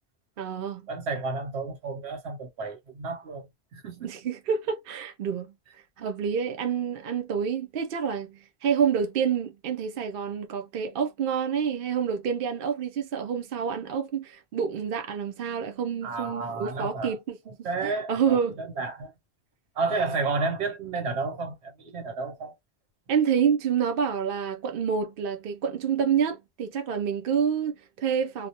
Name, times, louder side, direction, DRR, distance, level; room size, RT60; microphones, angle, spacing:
voice 1, 0.4-0.9 4.0-5.5 6.0-18.6 23.1-28.5, right 7 dB, 60° right, 0.7 m, -28 dB
voice 2, 0.9-4.1 16.0-17.1 17.6-19.1 19.8-22.5, right 3 dB, 80° right, 1.1 m, -31 dB
2.3 x 2.0 x 2.6 m
omnidirectional pair, 1.1 m